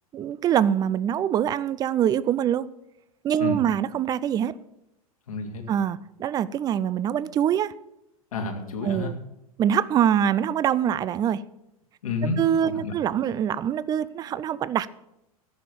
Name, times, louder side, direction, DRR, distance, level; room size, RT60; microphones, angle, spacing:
voice 1, 0.1-2.7 3.2-4.5 5.7-7.7 8.8-9.2 9.6-11.4 12.4-14.9, right 9 dB, 20° right, 0.4 m, -24 dB
voice 2, 5.3-5.6 8.3-9.1 12.0-12.9, left 3 dB, 70° left, 2.2 m, -30 dB
14.5 x 5.9 x 6.9 m
figure-of-eight pair, 95°, 19 cm